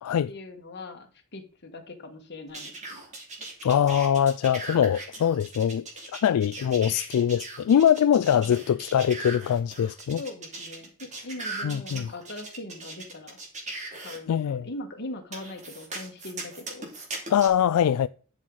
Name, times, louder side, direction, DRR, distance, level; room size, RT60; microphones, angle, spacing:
voice 1, 0.3-3.0 10.2-13.4 14.0-16.9, left 2 dB, 50° left, 1.8 m, -41 dB
sound 1, 2.5-14.2 15.3-17.5, right 2 dB, 35° right, 2.8 m, -39 dB
voice 2, 3.6-5.8 6.1-10.2 11.6-12.1 14.3-14.7 17.3-18.1, left 9 dB, 80° left, 0.3 m, -23 dB
11.5 x 6.5 x 4.0 m
head